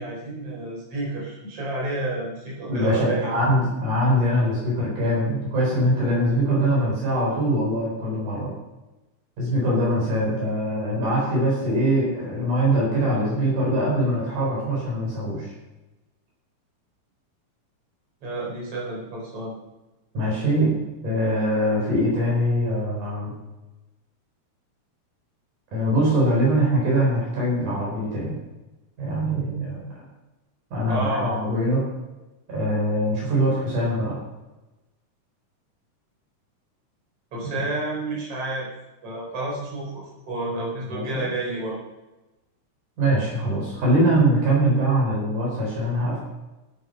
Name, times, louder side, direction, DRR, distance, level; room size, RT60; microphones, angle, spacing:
voice 1, 0.0-3.4 18.2-19.5 30.9-31.4 37.3-38.7 39.0-39.9 40.3-41.8, right 2 dB, 50° right, -3 dB, 5.3 m, -30 dB
voice 2, 2.7-8.5 9.4-15.5 20.1-23.3 25.7-28.4 29.0-29.9 30.7-31.8 32.5-34.2 37.4-37.7 40.9-41.3 43.0-46.2, right 1 dB, 90° right, -5 dB, 6.0 m, -23 dB
13.0 x 9.5 x 5.6 m, 1.1 s
omnidirectional pair, 3.5 m